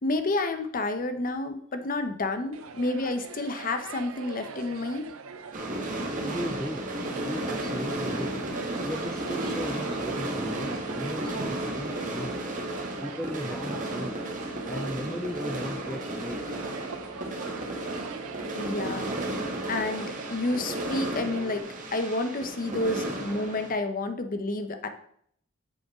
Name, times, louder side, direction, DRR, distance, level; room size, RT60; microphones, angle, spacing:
voice 1, 0.0-5.1 18.6-19.1 19.7-21.6 21.9-24.9, left 2 dB, 40° left, 8 dB, 0.8 m, -30 dB
sound 1, 2.5-21.6, right 5 dB, 80° right, 0.6 m, -42 dB
sound 2, 5.5-23.7, right 1 dB, 40° right, 1.5 m, -33 dB
voice 2, 6.2-8.4 8.8-12.3 13.0-14.2 14.6-16.4, equal, 5° left, 6 dB, 0.4 m, -37 dB
7.7 x 4.9 x 4.9 m, 0.65 s
head